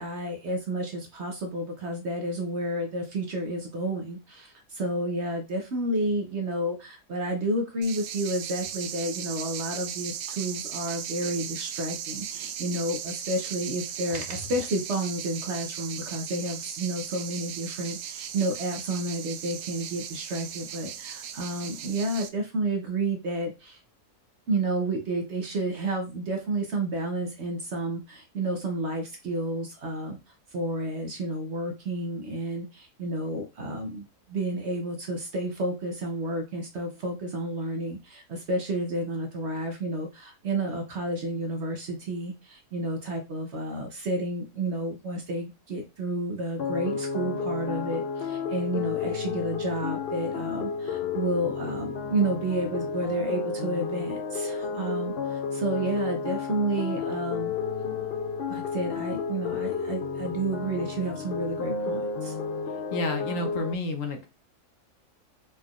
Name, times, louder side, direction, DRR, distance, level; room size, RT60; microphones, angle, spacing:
voice 1, 0.0-23.8 24.5-30.2 30.5-57.5 58.5-62.4, right 1 dB, 55° right, 3 dB, 0.9 m, -31 dB
sound 1, 7.8-22.3, right 9 dB, 80° right, 1.1 m, -37 dB
sound 2, 46.6-63.7, left 5 dB, 80° left, 0.5 m, -32 dB
voice 2, 62.9-64.3, left 2 dB, 60° left, 5 dB, 1.0 m, -30 dB
4.1 x 3.8 x 2.3 m, 0.27 s
omnidirectional pair, 1.7 m